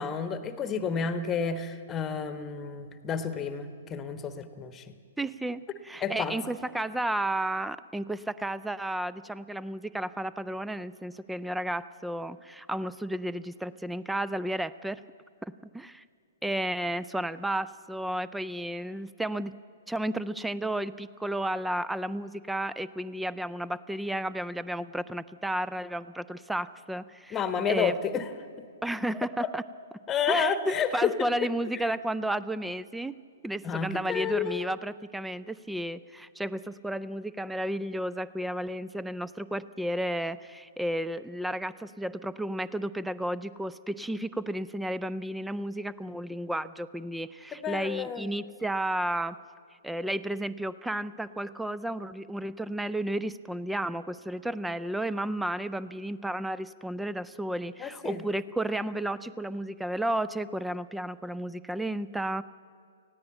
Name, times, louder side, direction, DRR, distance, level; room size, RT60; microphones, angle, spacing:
voice 1, 0.0-4.9 6.0-6.4 27.3-28.3 28.6-28.7 29.4-29.5 30.1-31.2 31.7-31.8 33.6-34.7 47.6-48.3 57.8-58.2, left 6 dB, 15° left, 12 dB, 1.1 m, -30 dB
voice 2, 5.2-15.0 15.4-16.0 16.4-19.5 19.9-28.0 28.8-29.6 30.3-33.1 33.4-49.4 49.8-62.4, right 1 dB, 5° right, 16 dB, 0.4 m, -32 dB
19.0 x 15.0 x 9.0 m, 2.2 s
figure-of-eight pair, 115°, 0 cm